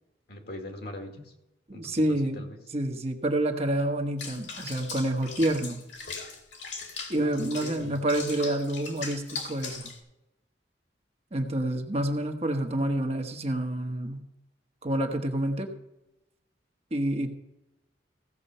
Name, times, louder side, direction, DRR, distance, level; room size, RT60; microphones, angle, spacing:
voice 1, 0.3-1.3 1.7-2.0 2.3-2.6 7.1-8.0, left 1 dB, 60° left, 3 dB, 2.0 m, -41 dB
voice 2, 1.7-2.5 2.7-5.8 7.1-9.9 11.3-14.2 14.8-15.7 16.9-17.3, right 1 dB, 35° right, 4 dB, 1.2 m, -28 dB
Water / Bathtub (filling or washing), 4.2-10.0, left 5 dB, 85° left, 2.2 m, -39 dB
16.0 x 6.8 x 5.5 m, 0.94 s
head